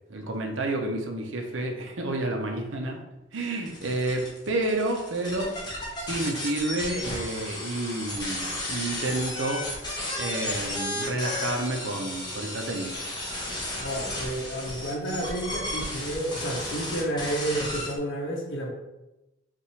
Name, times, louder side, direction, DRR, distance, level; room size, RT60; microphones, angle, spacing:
voice 1, 0.1-3.0 3.3-5.5 6.0-13.0, right 2 dB, 80° right, 2 dB, 0.7 m, -30 dB
sound 1, 3.7-18.0, left 1 dB, 20° left, 0.9 m, -34 dB
voice 2, 13.8-18.7, right 1 dB, 80° left, -2 dB, 0.8 m, -31 dB
5.6 x 2.6 x 3.2 m, 0.97 s
head